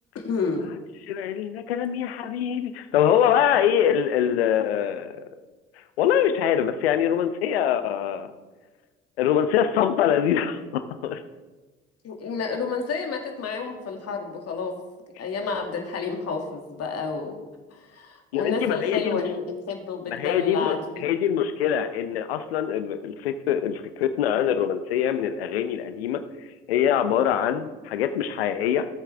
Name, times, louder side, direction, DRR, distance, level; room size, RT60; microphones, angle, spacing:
voice 1, 0.1-0.6 12.0-14.8 15.2-17.4 17.7-21.1, left 5 dB, 55° left, 3 dB, 2.2 m, -30 dB
voice 2, 1.0-5.2 6.0-8.3 9.2-11.2 18.3-19.2 20.1-26.2 26.7-28.9, left 9 dB, 85° left, 10 dB, 0.7 m, -24 dB
17.0 x 8.0 x 3.4 m, 1.2 s
hypercardioid pair, 55°, 30 cm